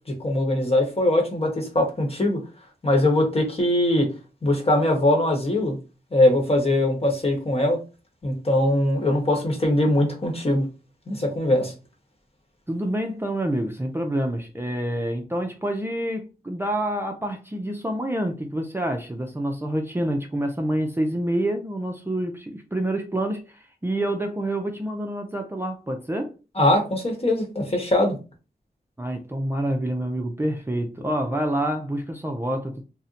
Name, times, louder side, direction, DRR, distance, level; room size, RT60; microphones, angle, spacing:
voice 1, 0.2-2.4 2.8-4.1 4.4-5.8 6.1-7.8 8.2-10.6 11.1-11.7 26.6-28.2, left 1 dB, 40° left, 1.1 m, -21 dB
voice 2, 12.7-26.3 29.0-32.8, right 1 dB, 15° right, 0.4 m, -27 dB
2.7 x 2.1 x 3.8 m
wide cardioid pair, 70°, 16 cm